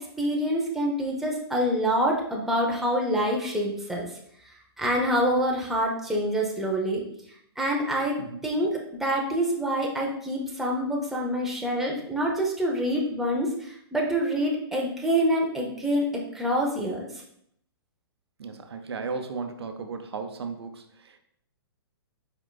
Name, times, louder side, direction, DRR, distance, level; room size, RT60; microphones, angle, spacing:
voice 1, 0.2-4.1 4.8-7.0 7.6-8.2 8.4-17.1, equal, ahead, -3 dB, 0.7 m, -26 dB
voice 2, 18.4-21.2, right 4 dB, 80° right, 6 dB, 0.6 m, -35 dB
4.9 x 4.5 x 2.3 m, 0.69 s
hypercardioid pair, 140°, 13 cm